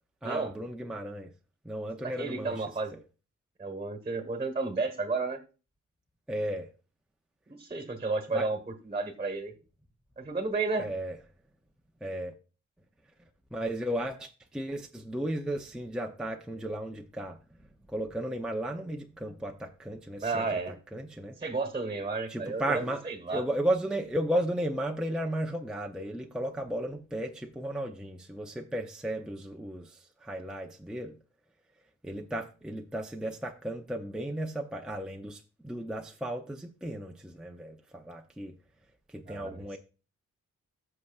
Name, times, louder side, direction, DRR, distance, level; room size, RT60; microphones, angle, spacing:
voice 1, 0.2-1.3 1.6-2.6 2.9-3.0 6.3-6.7 8.3-8.5 10.8-11.2 12.0-12.3 13.5-17.4 17.9-21.3 22.3-23.0 23.3-31.2 32.0-38.5 39.1-39.8, right 1 dB, 5° right, 0.5 m, -34 dB
voice 2, 2.0-2.9 3.6-5.4 7.6-9.5 10.2-10.8 20.2-20.8 21.4-23.4 39.3-39.8, right 3 dB, 20° right, 1.3 m, -32 dB
15.0 x 6.6 x 2.4 m
wide cardioid pair, 120°, 30 cm